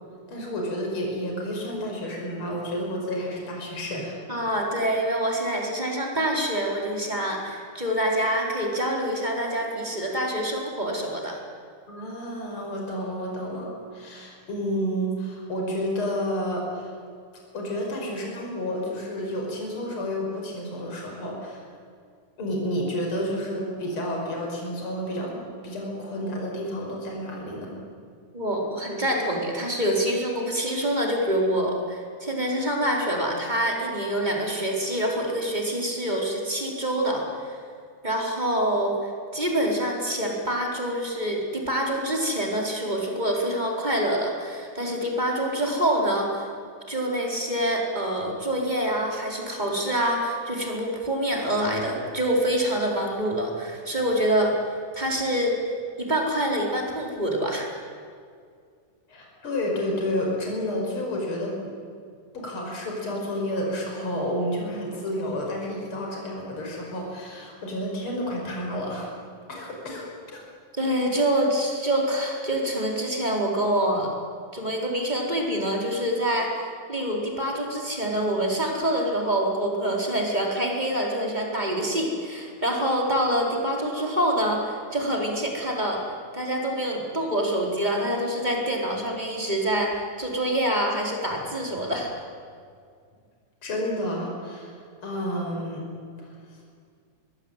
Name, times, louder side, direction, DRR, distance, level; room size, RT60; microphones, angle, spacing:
voice 1, 0.3-4.2 11.9-16.9 17.5-21.6 22.4-27.7 59.1-61.5 62.3-69.1 69.5-70.1 70.3-70.4 93.6-95.8 96.2-96.3, equal, 40° left, -1 dB, 6.0 m, -30 dB
voice 2, 4.3-11.4 28.3-37.3 38.0-46.5 46.9-54.5 54.9-55.6 56.0-57.7 70.8-74.1 74.5-76.5 76.9-86.0 86.3-92.2, right 1 dB, 15° right, -1 dB, 4.4 m, -26 dB
25.0 x 21.0 x 9.1 m, 2.2 s
omnidirectional pair, 3.5 m